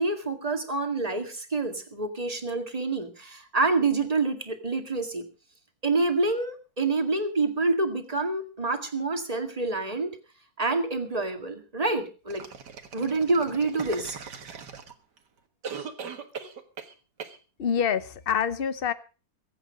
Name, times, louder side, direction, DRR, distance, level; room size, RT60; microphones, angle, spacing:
voice 1, 0.0-5.3 5.8-10.1 10.6-12.4 12.9-14.2, right 3 dB, 20° right, 6 dB, 2.0 m, -27 dB
sound 1, 12.3-15.2 15.6-16.9 17.2-17.4, right 6 dB, 60° right, 2.1 m, -39 dB
voice 2, 17.6-18.9, left 7 dB, 85° left, 14 dB, 0.5 m, -26 dB
23.0 x 8.5 x 5.0 m, 0.35 s
omnidirectional pair, 2.1 m